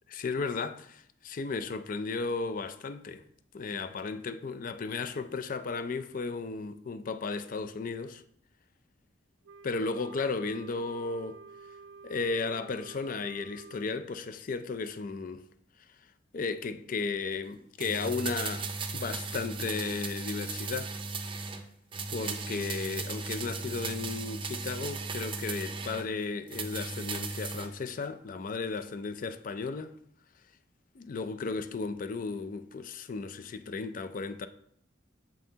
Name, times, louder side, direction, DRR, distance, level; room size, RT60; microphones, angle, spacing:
voice 1, 0.1-3.2 3.5-8.2 9.6-11.4 12.0-15.4 16.3-18.7 18.9-20.9 21.4-21.5 22.1-30.0 30.9-34.5, left 4 dB, 45° left, 0.4 m, -34 dB
Wind instrument woodwind instrument, 9.4-13.9, right 4 dB, 85° right, 0.3 m, -50 dB
sound 1, 17.8-21.6 21.9-26.1 26.5-27.7 28.0-28.1, right 4 dB, 30° right, 0.5 m, -36 dB
7.4 x 5.6 x 2.8 m
head